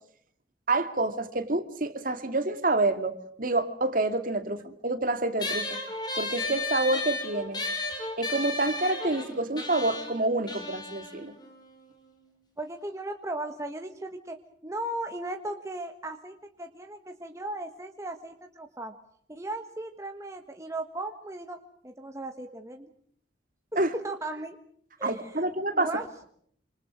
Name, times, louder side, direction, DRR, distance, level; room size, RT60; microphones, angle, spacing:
voice 1, 0.7-5.8 6.1-7.6 8.2-11.3 23.8-23.9 25.0-25.9, right 2 dB, 45° right, 8 dB, 2.5 m, -28 dB
sound 1, 5.4-12.2, left 2 dB, 25° left, 5.7 m, -34 dB
voice 2, 12.6-14.4 14.6-18.9 19.3-21.6 21.8-22.9 23.7-24.6 25.0-25.4 25.7-26.1, right 2 dB, 15° right, 5 dB, 1.4 m, -36 dB
27.5 x 26.5 x 6.3 m, 0.64 s
head